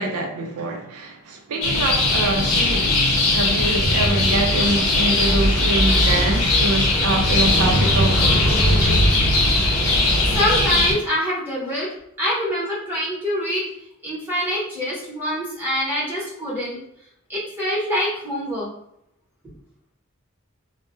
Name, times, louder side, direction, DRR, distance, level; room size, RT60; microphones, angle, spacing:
voice 1, 0.0-8.6, right 2 dB, 80° right, 0.4 m, -25 dB
sound 1, 1.6-10.9, left 1 dB, 80° left, 0.7 m, -19 dB
voice 2, 8.8-9.1 10.3-11.9 12.2-13.6 14.0-16.8 17.3-18.7, equal, 10° right, 0.8 m, -25 dB
2.2 x 2.0 x 2.9 m
head